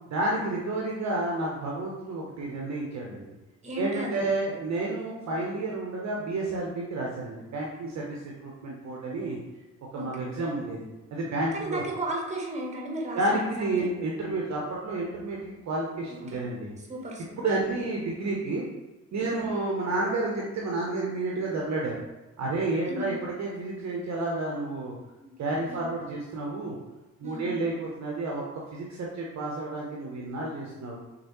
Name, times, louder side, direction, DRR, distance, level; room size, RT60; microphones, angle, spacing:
voice 1, 0.1-3.2 3.7-9.4 9.9-10.8 11.1-11.8 13.1-16.7 17.4-18.6 19.1-21.9 22.4-24.9 25.4-26.7 27.2-31.0, right 2 dB, 35° right, -2 dB, 0.8 m, -30 dB
voice 2, 3.6-4.3 10.0-10.3 11.5-13.9 16.1-16.5 16.9-17.4 19.2-19.5 22.9-23.2 25.2-25.4 25.7-25.8 27.2-27.6, right 1 dB, 15° right, 0 dB, 1.0 m, -35 dB
6.1 x 2.2 x 3.0 m, 1.1 s
figure-of-eight pair, 45°, 45 cm